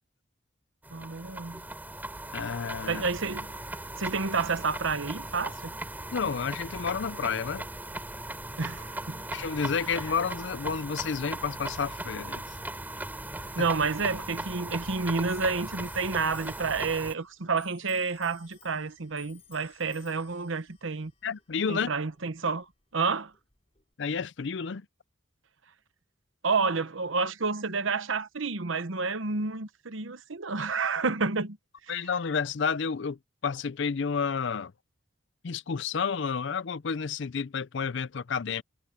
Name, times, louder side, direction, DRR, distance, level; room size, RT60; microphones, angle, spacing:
sound 1, 0.8-17.1, right 1 dB, 10° right, 3.5 m, -38 dB
voice 1, 0.9-1.6 2.9-3.5 4.0-5.7 8.6-9.2 13.5-21.1 21.7-22.7 22.9-23.3 26.4-31.6 31.9-32.0, right 4 dB, 70° right, 1.0 m, -30 dB
voice 2, 2.3-3.0 6.1-7.6 9.3-12.4 13.6-13.7 21.2-21.9 24.0-24.9 31.9-33.2 33.4-34.7 35.4-38.6, left 6 dB, 60° left, 0.5 m, -30 dB
Clock, 14.1-23.9, left 10 dB, 30° left, 5.9 m, -59 dB
head